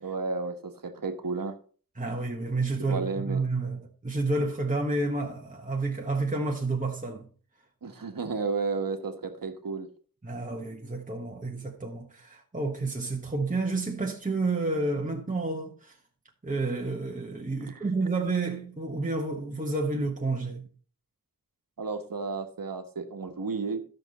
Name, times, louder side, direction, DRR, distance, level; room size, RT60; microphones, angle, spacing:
voice 1, 0.0-1.6 2.8-3.4 7.8-9.9 17.6-17.8 21.8-23.8, right 4 dB, 75° right, 1.3 m, -32 dB
voice 2, 2.0-7.3 10.2-16.0 16.4-20.7, right 3 dB, 25° right, 1.4 m, -30 dB
12.5 x 6.7 x 4.2 m
wide cardioid pair, 75°, 34 cm